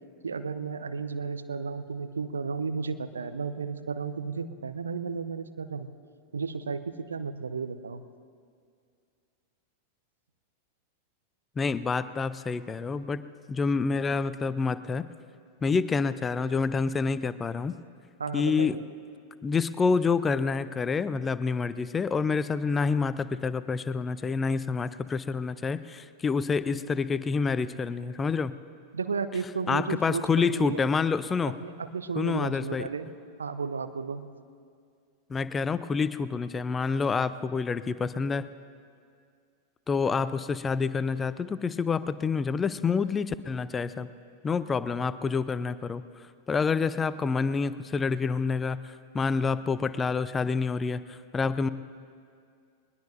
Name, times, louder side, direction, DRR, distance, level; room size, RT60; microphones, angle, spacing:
voice 1, 0.2-5.9 6.3-8.1 18.2-18.9 28.9-30.9 31.5-33.1 33.4-34.2, right 5 dB, 70° right, 12 dB, 0.7 m, -33 dB
voice 2, 11.6-13.2 13.5-15.1 15.6-17.8 18.3-18.8 19.4-28.5 29.7-31.5 32.2-32.9 35.3-38.5 39.9-44.1 44.4-46.0 46.5-51.7, left 5 dB, 15° left, 15 dB, 0.5 m, -28 dB
21.5 x 20.5 x 2.6 m, 2.2 s
figure-of-eight pair, 90°, 0 cm